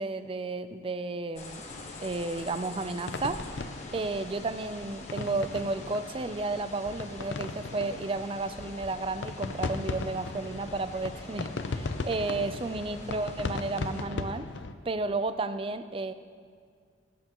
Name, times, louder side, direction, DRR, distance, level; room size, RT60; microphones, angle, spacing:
voice 1, 0.0-1.6 2.0-3.4 3.9-14.5 14.9-16.1, right 3 dB, 30° right, 11 dB, 0.4 m, -32 dB
sound 1, 1.4-14.0, left 2 dB, 40° left, 1.2 m, -45 dB
sound 2, 1.7-14.7, left 3 dB, 75° left, 0.5 m, -38 dB
18.5 x 9.1 x 3.0 m, 2.1 s
head